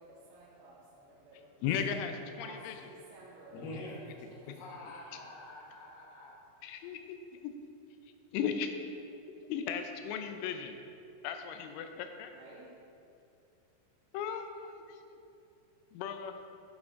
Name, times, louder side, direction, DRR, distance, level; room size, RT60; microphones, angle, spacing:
voice 1, 0.0-3.9 4.3-4.6 12.2-12.8, right 1 dB, 85° right, -7 dB, 3.4 m, -54 dB
voice 2, 1.6-2.7 4.5-4.6 6.6-7.5 8.3-8.7 9.5-10.8 11.2-12.3 14.1-15.0 15.9-16.4, left 7 dB, 85° left, 7 dB, 3.0 m, -36 dB
voice 3, 3.5-6.4, left 1 dB, 70° left, -3 dB, 2.5 m, -46 dB
8.4 x 7.3 x 3.6 m, 2.7 s
omnidirectional pair, 5.6 m